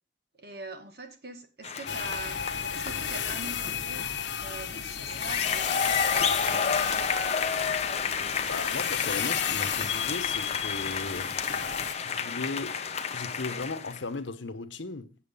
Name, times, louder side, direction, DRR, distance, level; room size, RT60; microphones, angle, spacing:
voice 1, 0.4-2.4 2.7-4.0 4.4-7.1, right 2 dB, 55° right, 1.8 m, -43 dB
sound 1, 1.6-4.1 5.0-14.0, left 6 dB, 35° left, 0.8 m, -31 dB
sound 2, 1.9-11.9, left 8 dB, 70° left, 1.2 m, -33 dB
voice 2, 8.5-11.3 12.0-12.8 13.1-15.2, left 3 dB, 90° left, 1.0 m, -36 dB
8.7 x 7.6 x 5.4 m
head